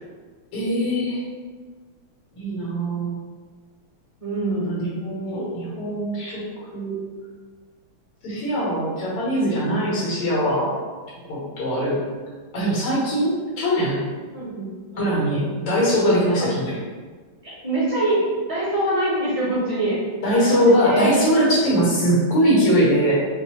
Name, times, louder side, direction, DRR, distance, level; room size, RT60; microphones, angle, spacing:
voice 1, 0.5-1.2 2.4-3.2 4.5-6.4 6.7-7.0 8.2-10.8 11.3-12.0 12.5-14.0 15.0-16.8 20.2-23.1, equal, 85° left, -6 dB, 2.3 m, -21 dB
voice 2, 4.2-4.8 5.3-5.5 14.3-15.1 16.4-16.5 17.4-18.2 18.5-20.0 20.3-21.1, right 1 dB, 20° right, -9 dB, 0.9 m, -25 dB
5.2 x 2.1 x 3.0 m, 1.4 s
omnidirectional pair, 2.4 m